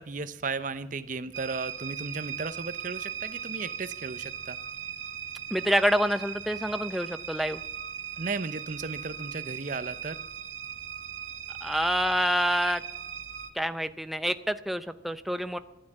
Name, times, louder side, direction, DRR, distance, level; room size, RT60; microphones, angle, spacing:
voice 1, 0.0-4.6 8.2-10.2, right 4 dB, 45° right, 13 dB, 0.7 m, -35 dB
sound 1, 1.3-13.5, right 8 dB, 90° right, 1.2 m, -38 dB
voice 2, 5.5-7.6 11.6-12.8 13.5-15.6, equal, ahead, 10 dB, 0.6 m, -27 dB
12.5 x 11.0 x 7.7 m, 0.92 s
head